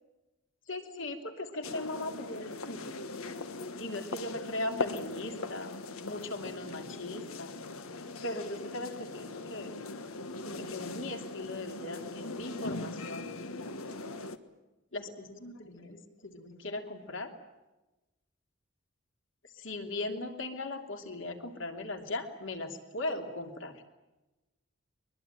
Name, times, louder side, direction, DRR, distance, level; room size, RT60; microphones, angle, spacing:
voice 1, 0.7-2.9 3.8-5.8 6.0-7.5 8.2-9.7 10.4-13.3 14.9-17.3 19.6-23.7, left 2 dB, 65° left, 5 dB, 2.9 m, -38 dB
sound 1, 1.6-14.4, left 3 dB, 90° left, 1.5 m, -40 dB
23.0 x 22.0 x 9.1 m, 1.1 s
head